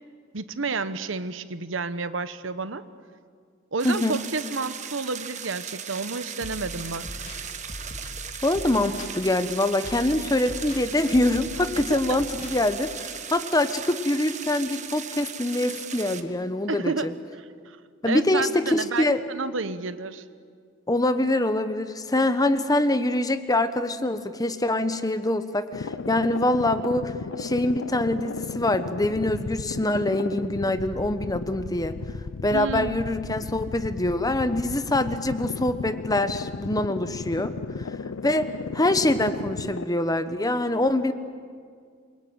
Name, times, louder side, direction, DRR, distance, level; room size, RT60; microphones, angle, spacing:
voice 1, 0.3-2.8 3.7-7.1 11.9-12.2 16.7-17.1 17.7-17.8 18.0-20.2 32.5-33.0, right 3 dB, 70° right, 13 dB, 1.1 m, -30 dB
voice 2, 3.8-4.2 8.4-17.1 18.0-19.2 20.9-27.1 27.4-32.0 32.4-37.5 38.2-41.1, left 1 dB, 20° left, 11 dB, 1.1 m, -24 dB
sound 1, 3.8-16.2, right 8 dB, 35° right, 1.3 m, -37 dB
sound 2, 6.4-13.3, left 1 dB, 40° left, 3.8 m, -41 dB
sound 3, 25.7-39.8, left 4 dB, 85° left, 0.6 m, -35 dB
27.5 x 23.0 x 9.1 m, 2.1 s
head